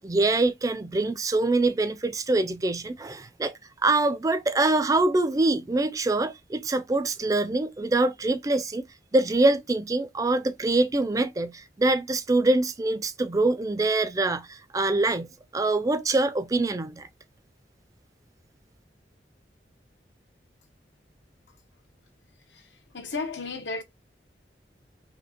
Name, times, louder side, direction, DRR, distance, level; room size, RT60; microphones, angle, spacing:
voice 1, 0.0-3.5 3.8-8.9 9.1-17.1, right 2 dB, 20° right, 0.3 m, -24 dB
voice 2, 22.5-23.8, left 4 dB, 90° left, 0.9 m, -34 dB
4.3 x 2.8 x 2.8 m
head